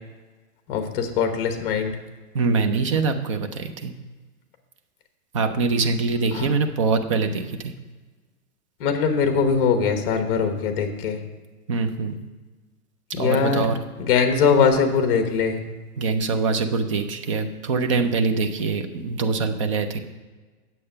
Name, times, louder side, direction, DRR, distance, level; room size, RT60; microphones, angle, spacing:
voice 1, 0.7-2.0 6.3-6.5 8.8-11.2 13.1-13.7 14.0-15.6, left 6 dB, 40° left, 6 dB, 1.2 m, -21 dB
voice 2, 2.3-3.9 5.3-7.7 11.7-12.2 13.2-13.8 16.0-20.0, right 4 dB, 25° right, 7 dB, 0.4 m, -24 dB
8.7 x 7.6 x 5.5 m, 1.3 s
hypercardioid pair, 155°, 43 cm